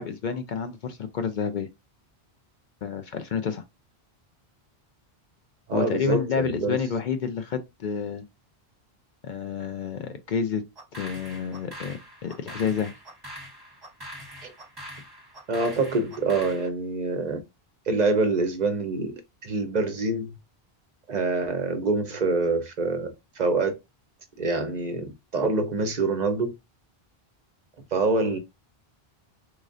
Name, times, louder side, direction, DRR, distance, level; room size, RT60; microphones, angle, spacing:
voice 1, 0.0-1.7 2.8-3.6 5.7-8.2 9.2-10.6 11.0-12.9, left 6 dB, 60° left, 0.6 m, -29 dB
voice 2, 5.7-6.8 14.4-14.5 15.5-17.4 17.9-20.3 21.1-23.7 24.4-26.5 27.9-28.4, right 3 dB, 50° right, 0.6 m, -26 dB
sound 1, 10.8-16.7, equal, 25° right, 1.0 m, -43 dB
3.6 x 3.2 x 2.4 m
omnidirectional pair, 1.0 m